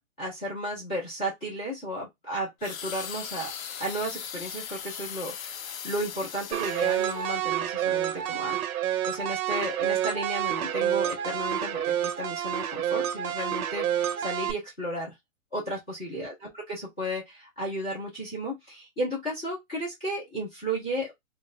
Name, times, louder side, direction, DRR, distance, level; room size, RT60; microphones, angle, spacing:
voice 1, 0.2-3.5 3.8-8.6 9.1-15.1 15.5-21.1, right 1 dB, 5° left, 0.4 m, -34 dB
sound 1, 2.6-7.6 8.2-8.4, left 8 dB, 70° left, 0.6 m, -39 dB
sound 2, 6.5-14.5, right 11 dB, 85° right, 0.7 m, -28 dB
2.4 x 2.0 x 3.7 m
hypercardioid pair, 150°, 42 cm